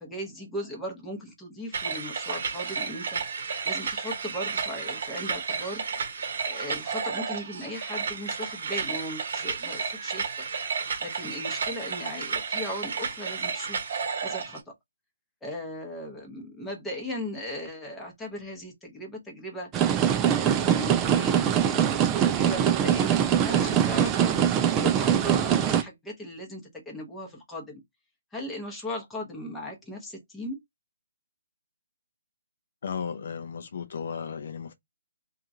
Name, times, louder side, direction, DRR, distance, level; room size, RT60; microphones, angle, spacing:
voice 1, 0.0-6.0 6.4-10.5 11.0-13.8 14.2-14.7 15.4-19.7 20.2-21.9 22.2-24.3 24.7-27.8 28.3-30.6, left 1 dB, 5° left, 0.9 m, -38 dB
sound 1, 1.7-14.6, right 5 dB, 60° right, 0.9 m, -32 dB
sound 2, 19.7-25.8, right 9 dB, 20° right, 0.4 m, -23 dB
voice 2, 32.8-34.7, left 6 dB, 55° left, 0.4 m, -34 dB
2.8 x 2.4 x 2.6 m
hypercardioid pair, 150°, 0 cm